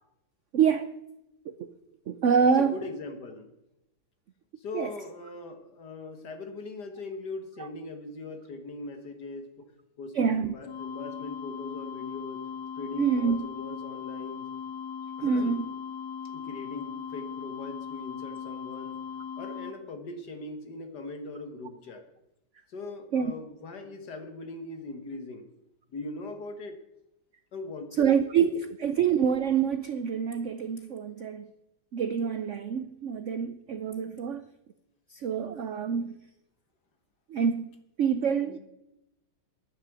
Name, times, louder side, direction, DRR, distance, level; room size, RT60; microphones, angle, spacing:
voice 1, 0.5-0.9 1.5-1.7 2.1-2.8 4.7-4.9 7.6-7.7 10.1-10.5 13.0-13.4 15.2-15.6 23.1-23.3 28.0-31.5 31.9-34.5 35.1-36.1 37.3-37.7 38.0-38.6, right 7 dB, 85° right, 0.6 m, -26 dB
voice 2, 2.4-3.5 4.6-9.7 10.0-12.5 12.8-14.5 15.2-15.6 16.3-19.0 19.4-22.0 22.7-25.5 25.9-26.8 27.5-28.1 38.5-38.6, left 3 dB, 60° left, 2.0 m, -40 dB
sound 1, 10.7-19.7, left 7 dB, 85° left, 1.7 m, -38 dB
11.0 x 9.6 x 6.8 m
omnidirectional pair, 2.1 m